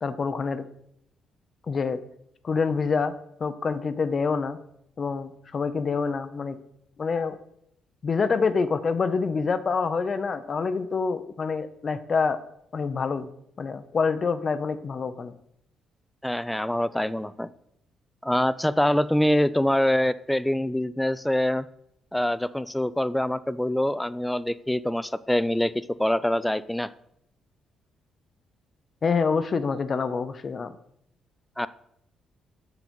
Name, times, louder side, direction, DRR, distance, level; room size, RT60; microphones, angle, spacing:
voice 1, 0.0-0.7 1.7-2.0 2.4-3.1 3.4-4.6 5.0-6.6 7.0-7.4 8.0-12.4 12.7-13.3 13.6-15.3 29.0-30.7, left 5 dB, 40° left, 13 dB, 0.6 m, -26 dB
voice 2, 16.2-17.5 18.2-21.7 22.1-26.9 31.6-31.7, left 1 dB, 5° left, 16 dB, 0.3 m, -25 dB
7.4 x 3.9 x 5.2 m, 0.74 s
cardioid pair, 90°, 0 cm